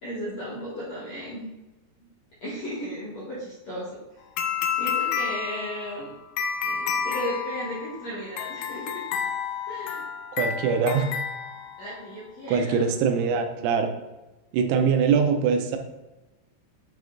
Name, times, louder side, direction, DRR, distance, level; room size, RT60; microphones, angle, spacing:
voice 1, 0.0-1.5 2.4-3.9 4.7-6.1 6.6-9.0 9.7-10.0 11.8-12.8, equal, 70° left, -8 dB, 1.6 m, -35 dB
sound 1, 4.4-12.1, left 7 dB, 85° left, 3.3 m, -30 dB
voice 2, 10.3-11.1 12.5-13.9 14.5-15.8, right 6 dB, 90° right, 5 dB, 3.6 m, -23 dB
8.6 x 5.0 x 4.0 m, 1.1 s
omnidirectional pair, 5.9 m